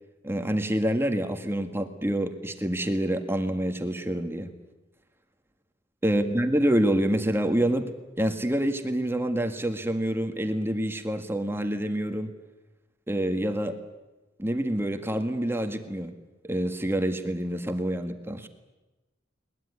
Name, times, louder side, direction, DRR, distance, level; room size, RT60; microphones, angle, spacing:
voice 1, 0.2-4.5 6.0-7.9 8.2-12.4 13.1-13.8 14.4-16.1 16.4-18.5, right 1 dB, 15° right, 6 dB, 1.7 m, -27 dB
21.5 x 21.0 x 9.7 m, 1.1 s
head